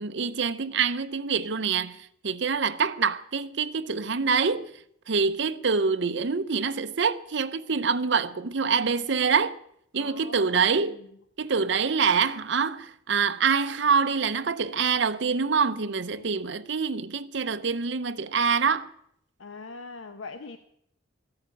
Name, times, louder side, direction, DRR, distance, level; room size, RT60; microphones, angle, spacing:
voice 1, 0.0-2.0 2.2-4.7 5.1-9.6 9.9-11.0 11.4-18.9, right 5 dB, 60° right, 0.7 m, -25 dB
voice 2, 9.9-11.1 16.1-16.3 19.4-20.6, left 3 dB, 80° left, 0.8 m, -42 dB
14.0 x 8.7 x 8.3 m
head